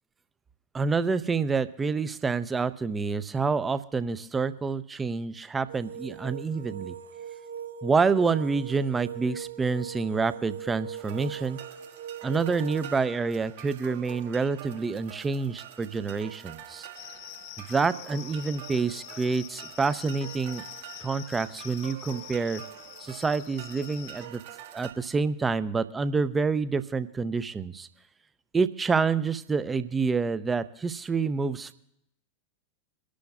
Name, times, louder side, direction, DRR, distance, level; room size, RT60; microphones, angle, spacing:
voice 1, 0.7-6.9 7.8-11.6 12.2-16.9 17.6-20.6 21.0-22.6 23.0-24.4 24.7-27.9 28.5-31.7, right 4 dB, 15° right, 15 dB, 0.6 m, -27 dB
sound 1, 5.7-13.0, right 7 dB, 70° right, 1.7 m, -40 dB
sound 2, 11.0-24.9, right 11 dB, 50° right, 1.6 m, -46 dB
sound 3, 16.9-24.3, left 17 dB, 45° left, 0.5 m, -45 dB
25.0 x 11.5 x 2.4 m, 0.79 s
figure-of-eight pair, 90°, 0 cm